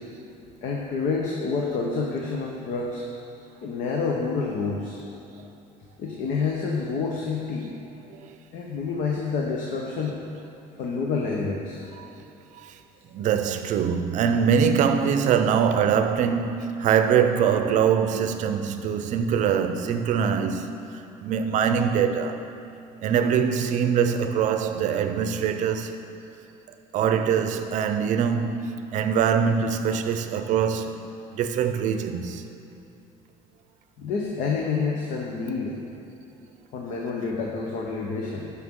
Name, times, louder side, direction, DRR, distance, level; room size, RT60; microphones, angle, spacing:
voice 1, 0.6-3.0 3.6-5.0 6.0-7.7 8.5-10.2 10.8-11.8 34.0-35.8 36.7-38.5, left 4 dB, 60° left, 1.0 m, -28 dB
voice 2, 13.1-22.4 23.0-26.0 26.9-31.1 31.3-32.4, right 7 dB, 55° right, 0.6 m, -23 dB
12.0 x 5.9 x 3.7 m
cardioid pair, 135°, 15 cm